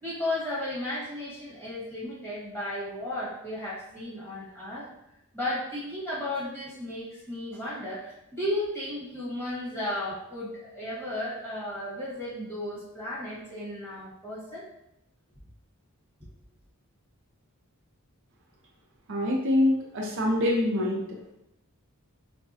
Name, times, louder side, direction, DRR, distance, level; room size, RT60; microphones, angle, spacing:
voice 1, 0.0-4.9 5.3-14.7, left 1 dB, 10° left, -9 dB, 1.4 m, -34 dB
voice 2, 19.1-21.0, left 1 dB, 60° right, -2 dB, 0.6 m, -25 dB
4.6 x 2.2 x 2.7 m, 0.84 s
head